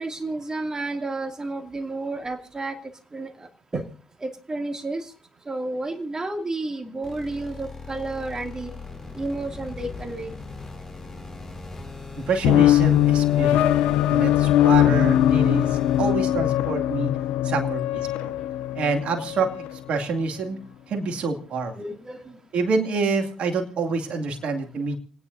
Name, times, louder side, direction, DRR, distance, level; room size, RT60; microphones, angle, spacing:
voice 1, 0.0-2.8 3.1-3.9 4.2-5.1 5.5-8.7 9.1-10.3 21.7-22.4, right 2 dB, 30° right, 5 dB, 2.5 m, -31 dB
sound 1, 7.0-16.1, left 3 dB, 25° left, 4.5 m, -40 dB
voice 2, 12.3-13.8 14.1-17.1 17.4-18.3 18.7-19.5 19.9-20.6 20.9-21.7 22.5-25.0, right 4 dB, 65° right, 3 dB, 2.4 m, -27 dB
sound 2, 12.4-19.8, left 12 dB, 80° left, 0.6 m, -21 dB
29.0 x 9.8 x 2.7 m, 0.40 s
hypercardioid pair, 45°, 2 cm